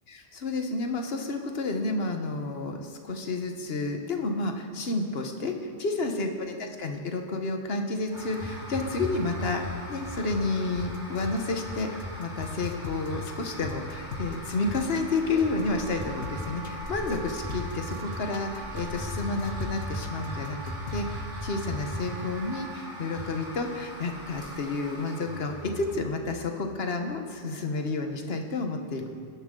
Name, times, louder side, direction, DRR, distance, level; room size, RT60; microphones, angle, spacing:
voice 1, 0.1-9.6 9.9-11.9 12.2-20.6 20.9-29.1, left 3 dB, 60° left, 4 dB, 1.3 m, -30 dB
sound 1, 8.1-26.1, equal, 5° right, 3.8 m, -38 dB
sound 2, 10.7-20.9, left 8 dB, 75° left, 1.0 m, -43 dB
Wind instrument woodwind instrument, 15.2-22.8, right 4 dB, 90° right, 1.4 m, -44 dB
19.5 x 10.5 x 3.8 m, 2.5 s
omnidirectional pair, 1.2 m